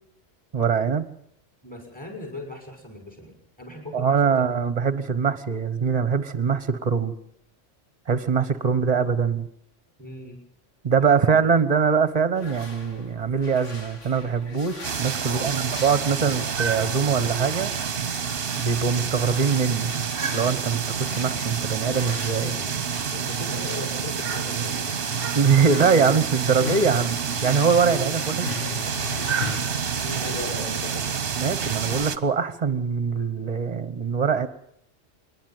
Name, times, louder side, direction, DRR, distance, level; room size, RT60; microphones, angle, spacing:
voice 1, 0.5-1.1 3.9-7.1 8.1-9.5 10.8-17.7 18.6-19.9 20.3-22.5 25.3-28.5 31.3-34.5, right 6 dB, 30° right, 14 dB, 1.3 m, -23 dB
voice 2, 1.6-4.6 10.0-10.4 11.1-11.5 15.2-15.8 22.4-25.1 30.0-31.1, left 1 dB, 5° left, 3 dB, 6.3 m, -38 dB
sound 1, 12.3-29.6, left 3 dB, 70° left, 2.9 m, -40 dB
sound 2, 14.8-32.2, right 6 dB, 50° right, 1.2 m, -28 dB
27.5 x 11.5 x 9.2 m, 0.72 s
omnidirectional pair, 1.3 m